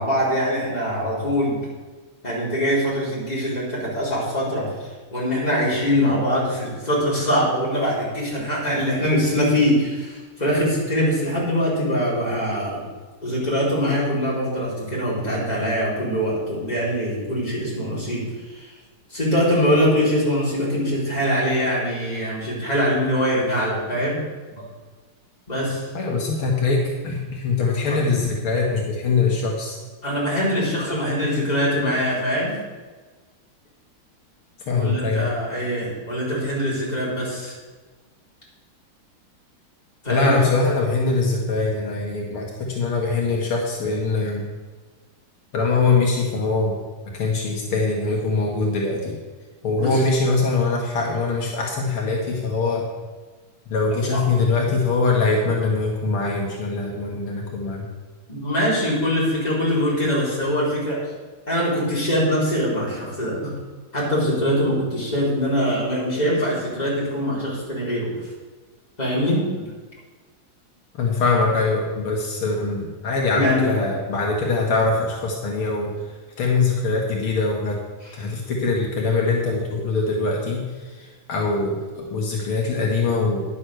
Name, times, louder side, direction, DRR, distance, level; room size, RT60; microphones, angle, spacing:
voice 1, 0.0-1.6 2.2-12.8 13.2-18.7 19.1-24.2 24.5-24.7 25.5-25.9 27.9-28.0 30.0-32.6 34.7-37.5 40.0-40.4 49.8-50.0 54.1-54.3 58.3-61.0 61.5-63.5 63.9-68.1 69.0-69.7 73.3-73.7 78.0-78.2, equal, 20° left, -7 dB, 4.2 m, -23 dB
voice 2, 25.9-29.8 34.7-35.3 40.1-44.4 45.5-46.8 47.1-49.2 49.6-52.9 53.7-57.9 71.0-75.9 76.4-77.8 78.1-83.4, left 3 dB, 80° left, -1 dB, 2.4 m, -22 dB
10.5 x 7.5 x 6.4 m, 1.3 s
omnidirectional pair, 2.3 m